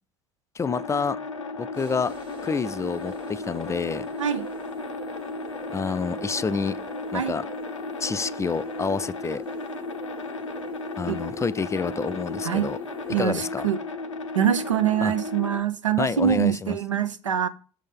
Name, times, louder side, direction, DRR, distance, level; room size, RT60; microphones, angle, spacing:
sound 1, 0.6-15.6, left 3 dB, 85° left, 0.6 m, -35 dB
voice 1, 0.6-1.2 1.6-2.1 2.4-4.1 5.7-6.8 7.1-7.4 8.0-9.4 11.0-12.8 13.2-13.7 15.0-15.1 16.0-16.8, left 5 dB, 20° left, 0.4 m, -28 dB
sound 2, 1.8-13.2, right 4 dB, 35° right, 1.7 m, -43 dB
voice 2, 13.1-13.8 14.3-17.5, right 9 dB, 85° right, 0.5 m, -24 dB
6.4 x 4.0 x 5.2 m
figure-of-eight pair, 60°, 16 cm